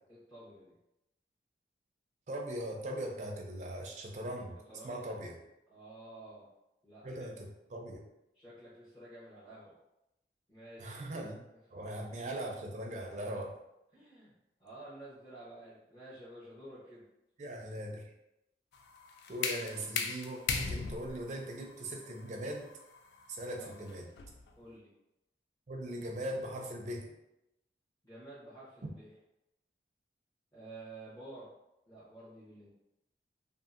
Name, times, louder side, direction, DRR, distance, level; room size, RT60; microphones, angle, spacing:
voice 1, 0.1-0.7 4.7-5.0 5.7-6.5 6.8-7.3 8.3-9.7 10.5-11.0 11.7-12.0 13.9-14.3 14.6-17.1 23.6-23.7 24.6-24.9 28.0-29.1 30.5-31.5 31.9-32.7, right 1 dB, 20° left, -12 dB, 0.8 m, -51 dB
voice 2, 2.3-4.6 4.8-5.4 7.0-8.0 10.8-11.4 11.7-13.6 17.4-18.0 19.3-22.7 23.3-24.1 25.7-27.1 28.8-28.9, right 1 dB, 40° right, 1 dB, 0.4 m, -40 dB
sound 1, 18.7-24.5, left 5 dB, 70° left, 0.3 m, -38 dB
2.7 x 2.5 x 2.5 m, 0.89 s
head